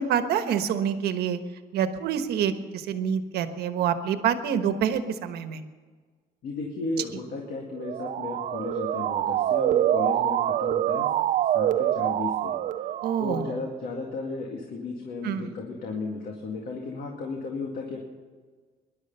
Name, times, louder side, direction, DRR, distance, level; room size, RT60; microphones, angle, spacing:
voice 1, 0.0-1.4 1.7-5.6 13.0-13.6 15.2-15.5, right 8 dB, 80° right, 9 dB, 1.3 m, -27 dB
voice 2, 6.4-11.1 11.5-12.5 13.2-18.0, left 3 dB, 60° left, 1 dB, 2.2 m, -34 dB
Motor vehicle (road) / Siren, 7.8-13.6, right 12 dB, 50° right, 0.5 m, -26 dB
21.0 x 11.5 x 5.6 m, 1.5 s
cardioid pair, 180°, 16 cm